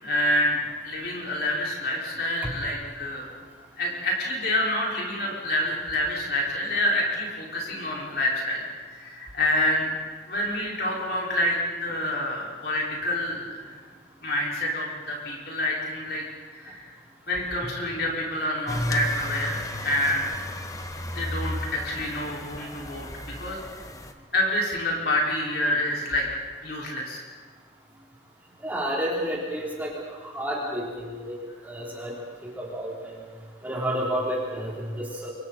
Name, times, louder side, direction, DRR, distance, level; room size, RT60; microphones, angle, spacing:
voice 1, 0.0-3.3 3.8-8.6 8.9-9.9 10.3-13.7 14.2-16.2 16.5-16.9 17.3-20.3 21.1-23.6 24.3-26.3 26.6-27.2, left 1 dB, 55° left, -3 dB, 5.8 m, -27 dB
sound 1, 18.7-24.1, left 1 dB, 15° left, 1.2 m, -33 dB
voice 2, 28.6-31.3 31.6-32.1 32.4-33.1 33.6-35.3, equal, 10° right, -5 dB, 3.9 m, -30 dB
29.0 x 24.0 x 4.5 m, 1.5 s
head